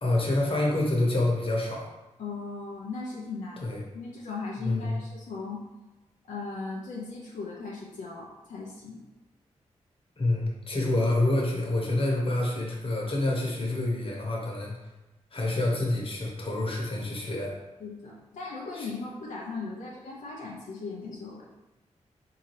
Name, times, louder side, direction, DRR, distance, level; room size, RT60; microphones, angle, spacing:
voice 1, 0.0-1.9 3.6-3.8 4.6-5.0 10.2-14.7 15.3-17.6 18.7-18.9, left 2 dB, 45° left, -2 dB, 1.1 m, -27 dB
voice 2, 2.2-5.6 6.3-9.0 17.8-21.5, left 4 dB, 80° left, -4 dB, 0.6 m, -38 dB
3.7 x 2.8 x 3.2 m, 1.0 s
cardioid pair, 50°, 13 cm